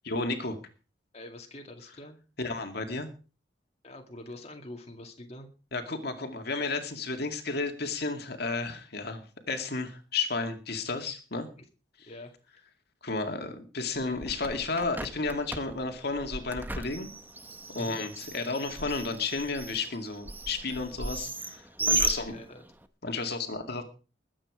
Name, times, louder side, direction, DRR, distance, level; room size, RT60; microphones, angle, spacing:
voice 1, 0.0-0.6 2.4-3.1 5.7-9.2 9.5-11.5 12.0-12.1 13.0-17.1 17.7-22.3 23.0-23.8, left 3 dB, 55° left, 5 dB, 2.3 m, -32 dB
voice 2, 1.1-2.2 3.8-5.5 11.6-11.7 12.1-12.7 17.7-18.0 21.8-22.6, left 1 dB, 35° left, 3 dB, 2.2 m, -45 dB
Bird, 14.0-22.9, right 2 dB, 10° right, 0.9 m, -35 dB
21.0 x 8.8 x 5.0 m, 0.36 s
head